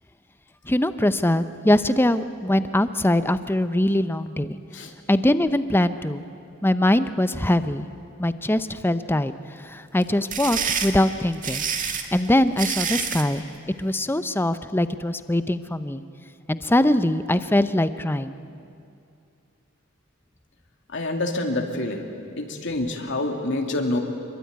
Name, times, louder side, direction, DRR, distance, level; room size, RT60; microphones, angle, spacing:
voice 1, 0.6-4.6 5.1-6.3 6.6-7.9 8.2-11.6 12.1-13.4 13.8-16.0 16.5-18.4, left 1 dB, 10° left, 12 dB, 0.7 m, -22 dB
sound 1, 10.0-13.3, right 7 dB, 40° right, 1.9 m, -27 dB
voice 2, 20.9-22.0 22.4-24.0, left 2 dB, 65° left, 3 dB, 2.6 m, -27 dB
27.0 x 23.0 x 9.5 m, 2.5 s
head